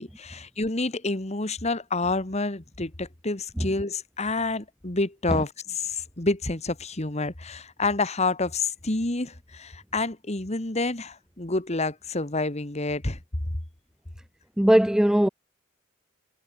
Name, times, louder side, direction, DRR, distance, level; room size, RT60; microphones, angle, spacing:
voice 1, 0.0-5.5 5.8-13.2, left 3 dB, 35° left, 1.9 m, -28 dB
voice 2, 14.6-15.3, equal, 5° right, 0.3 m, -19 dB
head